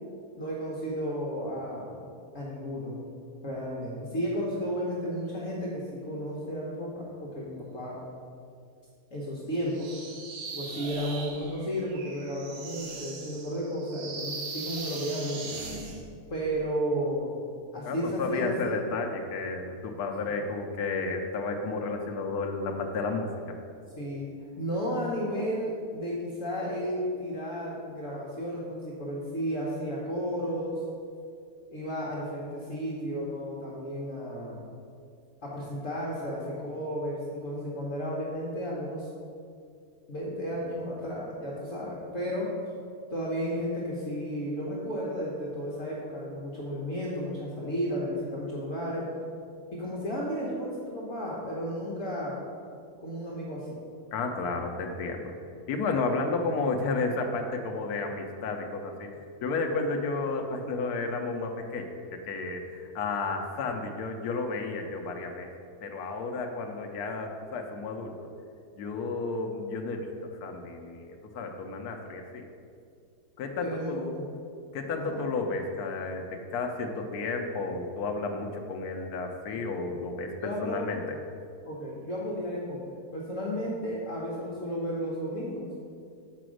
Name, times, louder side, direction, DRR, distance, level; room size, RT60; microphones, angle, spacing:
voice 1, 0.4-1.9 2.3-3.0 3.4-8.0 9.1-9.9 10.5-15.6 16.3-17.4 17.7-18.8 20.3-20.4 24.0-24.2 24.6-30.8 31.7-34.6 35.4-39.1 40.1-42.6 43.1-49.1 49.7-52.4 53.0-53.8 73.6-74.3 75.0-75.2 80.4-80.8 81.6-85.7, equal, 55° left, -5 dB, 1.5 m, -33 dB
sound 1, 9.7-16.0, right 3 dB, 85° right, 1.6 m, -40 dB
voice 2, 17.9-23.3 54.1-55.3 55.7-59.1 59.4-65.5 65.8-68.1 68.8-70.1 70.4-72.5 73.4-74.2 74.7-81.0, left 3 dB, 75° left, 2 dB, 1.2 m, -32 dB
6.8 x 5.0 x 6.3 m, 2.4 s
omnidirectional pair, 1.7 m